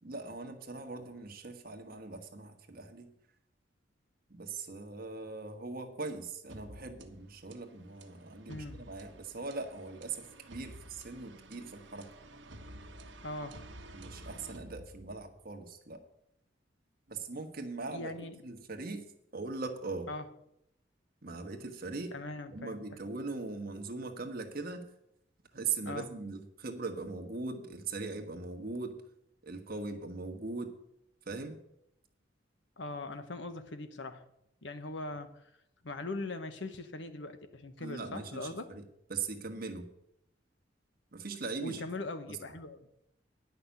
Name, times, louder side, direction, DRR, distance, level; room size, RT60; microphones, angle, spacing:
voice 1, 0.0-3.1 4.3-12.1 13.9-16.1 17.1-18.1 18.4-20.1 21.2-22.1 22.5-24.9 25.5-29.0 29.4-30.8 31.2-31.6 37.8-38.8 39.1-39.9 41.1-41.8 42.3-42.4, right 3 dB, 50° right, 5 dB, 1.4 m, -40 dB
sound 1, 6.5-15.4, right 1 dB, 75° right, 1.4 m, -51 dB
voice 2, 8.5-8.8 13.2-13.6 17.9-18.4 20.1-20.2 22.1-22.8 25.9-26.1 32.8-34.2 34.6-35.4 35.8-38.7 41.6-42.8, left 2 dB, 70° left, 9 dB, 1.1 m, -40 dB
10.5 x 6.0 x 8.3 m, 0.79 s
head